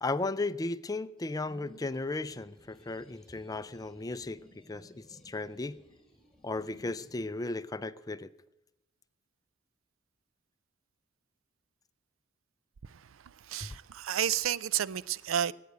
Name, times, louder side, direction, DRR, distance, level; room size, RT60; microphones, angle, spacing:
voice 1, 0.0-5.8 6.4-8.3, left 2 dB, 20° left, 0.4 m, -35 dB
sound 1, 1.2-7.3, left 1 dB, 5° left, 3.4 m, -58 dB
voice 2, 12.8-15.5, right 10 dB, 80° right, 0.4 m, -32 dB
16.0 x 9.5 x 8.1 m
head